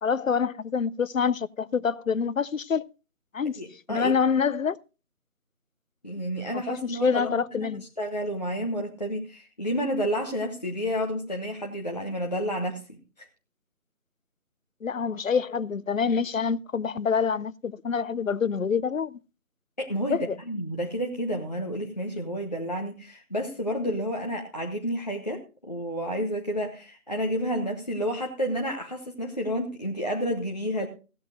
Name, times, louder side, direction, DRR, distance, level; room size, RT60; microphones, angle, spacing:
voice 1, 0.0-2.8 3.3-3.6 3.9-4.8 6.5-7.8 14.8-19.2 20.1-20.4, left 6 dB, 60° left, 0.6 m, -26 dB
voice 2, 3.6-4.1 6.0-13.3 19.8-20.2 20.5-30.9, equal, 30° left, 1.0 m, -30 dB
16.0 x 13.0 x 2.5 m
figure-of-eight pair, 165°, 44 cm